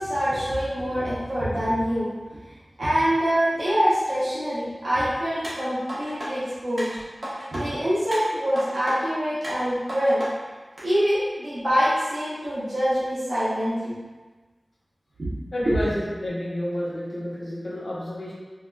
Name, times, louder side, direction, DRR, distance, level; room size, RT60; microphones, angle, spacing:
voice 1, 0.0-2.1 2.8-6.9 7.5-10.2 10.8-14.0 15.7-15.8, equal, 85° right, -11 dB, 0.7 m, -25 dB
sound 1, 5.4-6.3 6.8-7.6 8.1-9.0 9.4-10.3 10.8-10.9, equal, 50° right, 0.9 m, -34 dB
voice 2, 15.5-18.3, equal, 75° left, -7 dB, 0.8 m, -29 dB
3.4 x 2.3 x 2.2 m, 1.3 s
wide cardioid pair, 60°, 0 cm